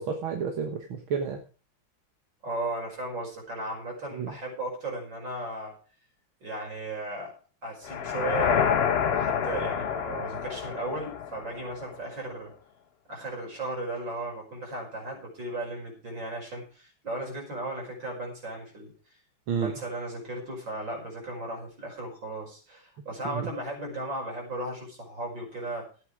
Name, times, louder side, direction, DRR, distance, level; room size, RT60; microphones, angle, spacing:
voice 1, 0.0-1.4 4.1-4.3 19.5-19.7 23.3-23.5, right 6 dB, 85° right, 3 dB, 2.2 m, -30 dB
voice 2, 2.4-5.7 6.4-7.3 7.6-12.5 13.1-19.2 19.6-25.9, right 2 dB, 65° right, 0 dB, 6.2 m, -36 dB
sound 1, 7.8-12.0, left 7 dB, 70° left, 0.6 m, -28 dB
13.0 x 9.5 x 4.8 m, 0.38 s
omnidirectional pair, 2.2 m